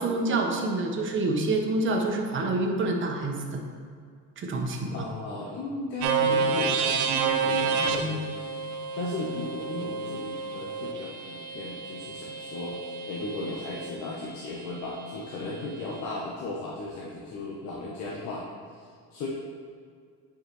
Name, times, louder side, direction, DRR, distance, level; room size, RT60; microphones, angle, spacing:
voice 1, 0.0-3.6 4.4-5.1 7.8-8.2, right 2 dB, 40° right, 2 dB, 1.1 m, -27 dB
voice 2, 4.9-8.6 8.9-18.4 19.1-19.3, left 2 dB, 65° left, -3 dB, 1.0 m, -36 dB
sound 1, 6.0-13.9, right 5 dB, 85° right, 0.7 m, -29 dB
9.5 x 4.8 x 3.1 m, 2.1 s
cardioid pair, 115°, 30 cm